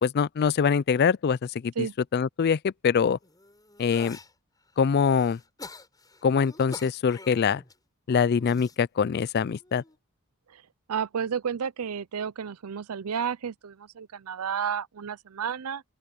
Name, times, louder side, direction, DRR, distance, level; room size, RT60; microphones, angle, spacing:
voice 1, 0.0-1.7 2.1-3.2 3.8-4.2 4.8-5.4 6.2-7.6 8.1-9.8, left 6 dB, 45° left, 0.3 m, -24 dB
sound 1, 3.2-4.3 4.8-7.7 8.3-8.8 9.6-10.0, left 2 dB, 15° left, 7.9 m, -46 dB
voice 2, 10.9-15.8, right 7 dB, 80° right, 0.5 m, -31 dB
open air
head